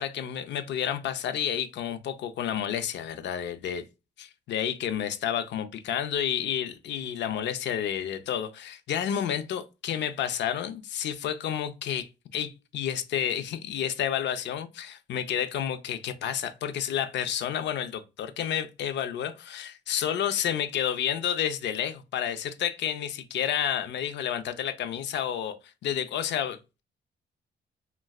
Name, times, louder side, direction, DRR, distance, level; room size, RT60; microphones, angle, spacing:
voice 1, 0.0-3.8 4.2-25.6 25.8-26.8, left 9 dB, 65° left, 0.4 m, -30 dB
3.0 x 2.4 x 2.2 m
cardioid pair, 90°, 20 cm